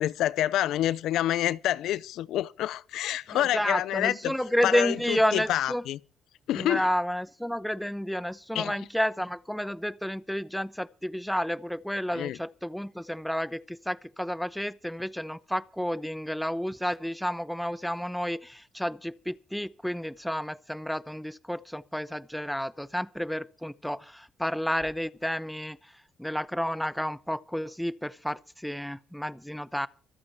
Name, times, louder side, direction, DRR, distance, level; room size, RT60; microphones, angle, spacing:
voice 1, 0.0-4.3 4.6-6.0 6.5-6.9 8.5-8.7 12.1-12.4, left 13 dB, 85° left, 0.6 m, -27 dB
voice 2, 3.3-5.8 6.5-25.8 26.2-29.9, equal, ahead, 0.8 m, -31 dB
25.0 x 8.7 x 4.5 m
cardioid pair, 90°, 0 cm